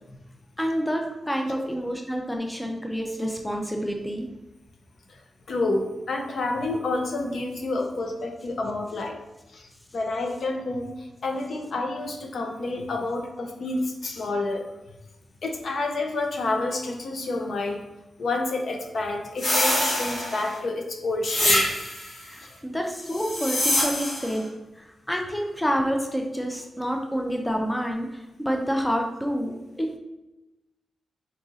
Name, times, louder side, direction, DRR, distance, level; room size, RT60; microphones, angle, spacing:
voice 1, 0.6-4.3 22.3-24.5 24.8-30.0, equal, 5° left, 2 dB, 0.4 m, -28 dB
voice 2, 5.5-9.2 9.5-14.6 15.4-17.8 18.2-21.6 22.4-22.5, left 2 dB, 60° left, 3 dB, 0.5 m, -29 dB
sound 1, 19.4-20.6 21.2-22.1 23.1-24.3, left 1 dB, 85° left, 1.4 m, -25 dB
4.0 x 2.5 x 3.9 m, 0.98 s
wide cardioid pair, 140°, 0 cm